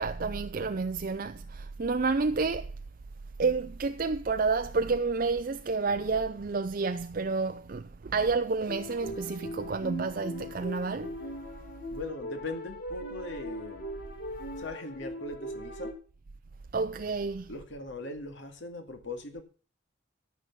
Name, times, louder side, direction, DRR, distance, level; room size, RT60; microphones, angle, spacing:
voice 1, 0.0-2.7 3.4-11.2 16.7-17.6, right 4 dB, 45° right, 0.5 m, -30 dB
sound 1, 8.7-15.9, equal, 45° left, 2.2 m, -40 dB
voice 2, 11.9-13.9 14.6-15.9 17.5-19.4, left 2 dB, 70° left, 2.1 m, -40 dB
13.5 x 6.2 x 7.1 m
head